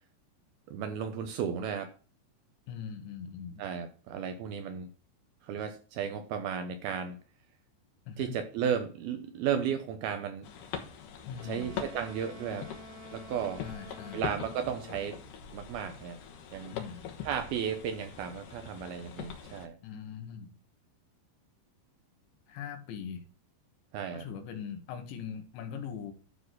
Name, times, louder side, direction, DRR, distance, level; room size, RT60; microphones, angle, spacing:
voice 1, 0.7-1.9 3.6-4.9 5.4-7.2 8.2-10.5 11.4-12.7 13.1-13.6 14.1-15.2 15.5-16.2 16.5-16.8 17.2-19.8 23.9-24.3, right 8 dB, 75° right, 8 dB, 2.4 m, -34 dB
voice 2, 2.7-3.6 8.1-8.4 11.3-11.8 13.6-14.2 16.7-17.1 19.8-20.5 22.5-23.2 24.1-26.1, left 7 dB, 85° left, 7 dB, 3.8 m, -41 dB
sound 1, 10.4-19.7, left 7 dB, 65° left, 2.4 m, -43 dB
Wind instrument woodwind instrument, 11.3-15.3, equal, 50° right, 2.1 m, -49 dB
12.0 x 4.2 x 6.4 m, 0.36 s
omnidirectional pair, 5.2 m